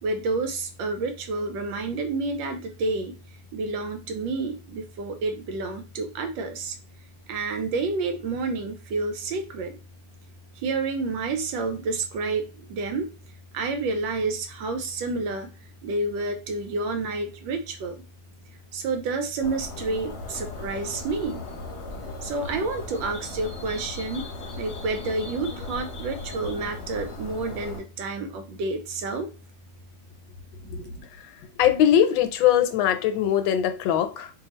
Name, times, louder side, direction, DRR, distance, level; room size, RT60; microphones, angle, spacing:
voice 1, 0.0-3.2 3.5-6.8 7.3-9.8 10.6-13.1 13.5-15.5 15.8-18.0 18.7-21.5 22.2-24.2 24.6-29.3 30.6-31.1, right 3 dB, 80° right, 1.4 m, -29 dB
sound 1, 19.4-27.8, left 2 dB, 45° left, 0.8 m, -37 dB
voice 2, 31.6-34.3, left 10 dB, 80° left, 1.4 m, -21 dB
3.3 x 2.3 x 4.2 m
omnidirectional pair, 2.1 m